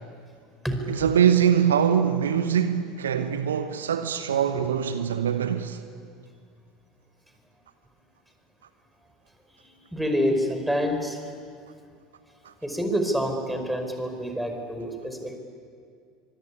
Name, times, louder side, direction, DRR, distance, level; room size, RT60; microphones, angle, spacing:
voice 1, 0.9-5.8 12.4-12.5, right 8 dB, 75° right, 1.1 m, -23 dB
voice 2, 9.9-11.2 12.6-15.4, equal, 5° right, 5.1 m, -27 dB
24.5 x 24.5 x 9.9 m
figure-of-eight pair, 70°, 0 cm